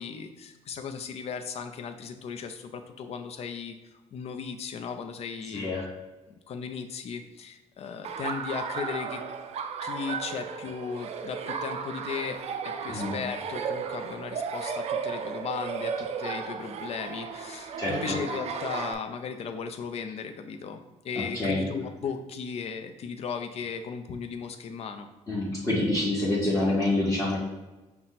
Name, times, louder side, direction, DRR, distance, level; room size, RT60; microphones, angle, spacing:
voice 1, 0.0-3.8 4.1-5.7 6.5-9.2 9.8-20.8 21.0-25.1, left 6 dB, 55° left, 6 dB, 0.5 m, -36 dB
voice 2, 5.5-5.9 12.9-13.2 17.8-18.2 21.1-21.7 25.3-27.4, left 2 dB, 25° left, -8 dB, 1.1 m, -27 dB
Laughter, 8.0-18.9, right 6 dB, 55° right, 0.4 m, -34 dB
5.7 x 2.2 x 4.0 m, 1.1 s
cardioid pair, 120°, 13 cm